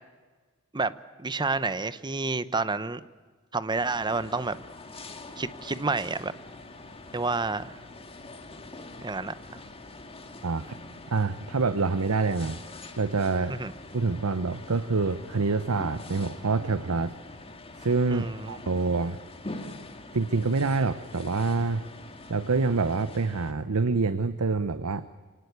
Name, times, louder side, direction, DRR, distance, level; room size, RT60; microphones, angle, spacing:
voice 1, 1.2-3.0 3.5-4.6 5.4-6.3 7.1-7.7 9.0-9.3 13.5-13.7 18.1-18.6, right 3 dB, 20° right, 14 dB, 0.8 m, -29 dB
sound 1, 3.7-23.5, left 2 dB, 25° left, 2.0 m, -44 dB
voice 2, 10.4-10.8 11.1-13.6 13.9-17.1 17.8-19.2 20.1-21.8 22.3-25.0, right 4 dB, 75° right, 12 dB, 0.8 m, -26 dB
24.5 x 19.0 x 8.2 m, 1.4 s
head